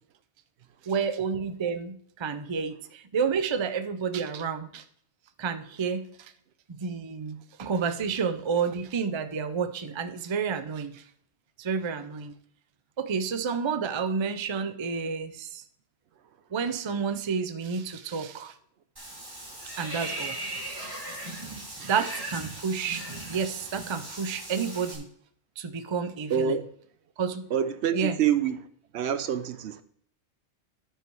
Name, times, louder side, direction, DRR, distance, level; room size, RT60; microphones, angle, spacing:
voice 1, 0.8-4.8 5.4-6.3 6.7-11.0 11.6-12.3 13.0-15.6 16.5-18.5 19.8-20.4 21.9-25.1 25.6-26.6 27.2-27.4 27.9-28.2, right 6 dB, 35° right, 0.5 m, -30 dB
Water / Bathtub (filling or washing), 19.0-25.0, right 1 dB, 20° right, 2.5 m, -38 dB
voice 2, 26.3-26.7 27.5-28.7 28.9-29.8, right 8 dB, 70° right, 0.8 m, -26 dB
12.5 x 4.8 x 4.6 m
omnidirectional pair, 1.2 m